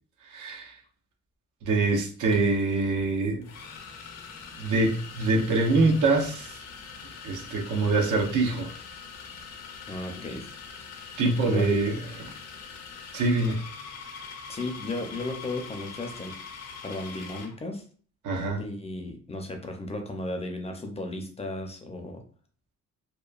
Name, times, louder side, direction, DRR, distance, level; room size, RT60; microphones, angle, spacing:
voice 1, 0.3-0.7 1.6-3.4 4.6-6.6 7.2-8.7 11.2-12.0 12.2-12.3 13.1-13.6 18.2-18.6, right 3 dB, 80° right, 0.8 m, -24 dB
sound 1, 2.1-2.3 3.4-17.6, left 5 dB, 60° left, 0.7 m, -43 dB
voice 2, 9.9-10.5 11.4-11.8 14.5-16.4 16.8-17.8 18.6-22.2, left 2 dB, 20° left, 0.5 m, -35 dB
2.9 x 2.2 x 2.4 m
cardioid pair, 90°, 30 cm